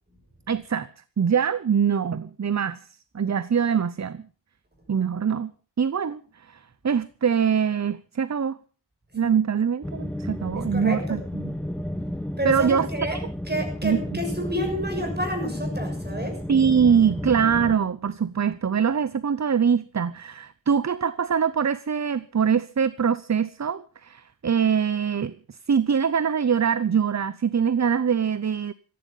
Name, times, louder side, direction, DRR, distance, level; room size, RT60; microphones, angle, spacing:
voice 1, 0.5-0.9 1.2-2.8 3.1-4.2 4.9-5.5 5.8-6.2 6.5-8.6 9.1-11.5 12.4-13.2 13.8-14.0 16.5-28.7, right 7 dB, 40° right, 0.7 m, -23 dB
sound 1, 9.8-17.8, equal, 5° left, 1.0 m, -32 dB
voice 2, 10.5-11.2 12.4-13.2 13.5-16.4, equal, 20° right, 6.6 m, -30 dB
17.5 x 15.0 x 5.4 m
wide cardioid pair, 95°, 44 cm